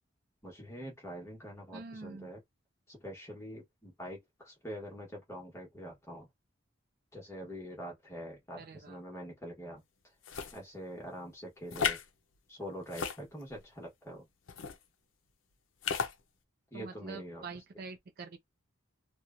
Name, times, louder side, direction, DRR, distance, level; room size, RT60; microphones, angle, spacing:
voice 1, 0.4-2.4 2.9-6.3 7.1-9.8 10.5-12.0 12.5-14.3 16.7-17.6, equal, 15° left, 1.1 m, -45 dB
voice 2, 1.7-2.3 8.6-9.0 16.7-18.4, right 4 dB, 50° right, 0.4 m, -45 dB
sound 1, 10.2-10.6 11.7-12.1 12.9-13.6 14.5-14.8 15.8-16.1, left 6 dB, 70° left, 0.5 m, -34 dB
2.8 x 2.2 x 2.5 m
head